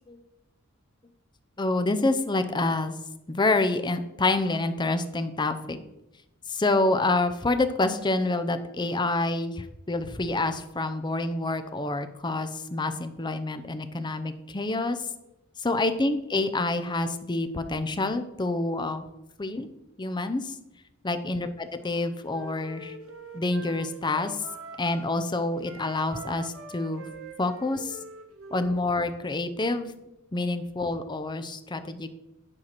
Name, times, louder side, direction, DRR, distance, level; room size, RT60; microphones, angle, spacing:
voice 1, 1.6-2.9 3.3-5.8 6.5-15.0 15.6-19.0 19.4-19.7 20.0-20.5 21.0-21.5 21.8-22.9 23.3-24.4 24.8-27.0 27.4-28.0 28.5-29.9 30.3-32.1, left 2 dB, 20° left, 9 dB, 0.6 m, -27 dB
Wind instrument woodwind instrument, 21.7-25.1 25.6-29.3, right 2 dB, 75° right, 1.6 m, -44 dB
9.9 x 4.6 x 5.9 m, 0.89 s
head